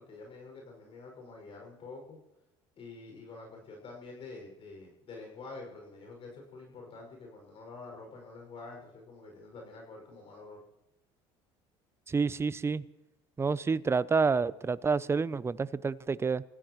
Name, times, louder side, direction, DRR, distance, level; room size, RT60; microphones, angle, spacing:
voice 1, 0.0-2.2 2.8-10.6, left 3 dB, 50° left, 1 dB, 6.2 m, -47 dB
voice 2, 12.1-12.8 13.4-16.4, right 4 dB, 20° right, 17 dB, 0.6 m, -28 dB
28.0 x 16.0 x 3.2 m, 0.91 s
supercardioid pair, 90°, 12 cm